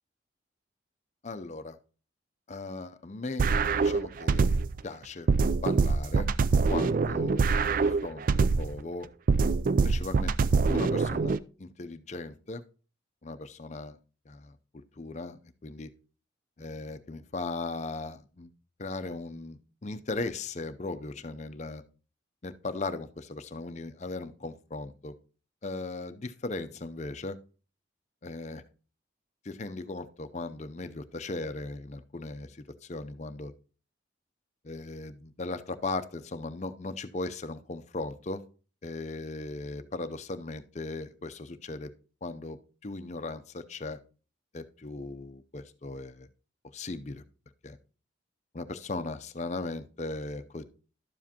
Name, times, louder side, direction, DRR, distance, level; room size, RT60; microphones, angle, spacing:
voice 1, 1.2-1.8 2.5-3.5 3.7-4.6 4.8-5.3 5.6-6.3 6.7-7.4 7.8-9.1 9.8-12.6 13.2-14.0 14.3-14.6 15.0-15.9 16.6-18.5 18.8-21.8 22.4-25.1 25.6-27.4 28.2-28.6 29.4-33.5 34.6-38.4 38.8-41.9 42.2-44.0 44.5-46.3 46.7-47.2 47.6-47.8 48.5-50.6, left 3 dB, 35° left, 11 dB, 0.6 m, -38 dB
sound 1, 3.4-4.8 5.3-8.8 9.3-11.4, right 4 dB, 45° right, 0.3 m, -24 dB
12.0 x 7.3 x 2.9 m, 0.36 s
head